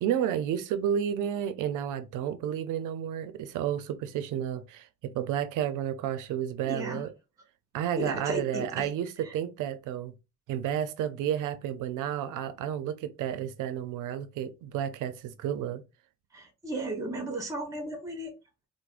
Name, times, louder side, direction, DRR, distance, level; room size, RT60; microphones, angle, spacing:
voice 1, 0.0-7.1 7.7-10.1 10.5-15.8, right 10 dB, 85° right, 0.5 m, -31 dB
voice 2, 6.6-7.1 8.0-8.9 9.2-9.3 16.3-18.3, right 1 dB, 10° right, 0.9 m, -35 dB
4.7 x 2.1 x 2.4 m
cardioid pair, 90°, 30 cm